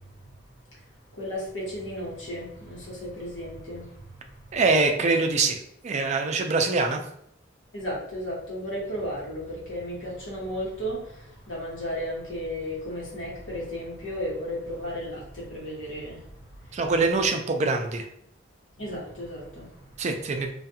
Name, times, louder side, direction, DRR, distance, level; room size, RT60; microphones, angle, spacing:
voice 1, 1.2-4.1 7.7-16.3 16.6-16.8 18.8-19.9, equal, 85° left, -5 dB, 1.2 m, -34 dB
voice 2, 4.5-5.6 5.8-7.0 16.7-18.1 20.0-20.5, right 3 dB, 40° right, 5 dB, 0.3 m, -24 dB
2.5 x 2.3 x 2.7 m, 0.71 s
head